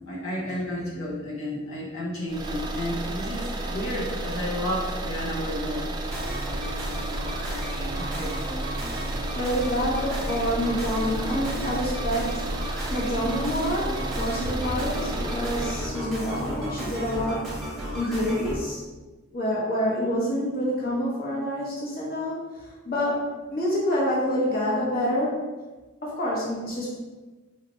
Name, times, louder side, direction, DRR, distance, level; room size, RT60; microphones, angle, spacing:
voice 1, 0.1-5.9 8.0-8.3, left 1 dB, 70° left, -6 dB, 1.0 m, -32 dB
sound 1, 2.3-15.9, right 2 dB, 20° right, 0.3 m, -32 dB
sound 2, 6.0-18.6, equal, ahead, 1.2 m, -34 dB
voice 2, 9.3-12.4 12.9-17.5 17.9-18.8 19.3-25.5 26.0-26.9, equal, 45° left, -5 dB, 1.0 m, -27 dB
4.4 x 2.8 x 3.0 m, 1.2 s
head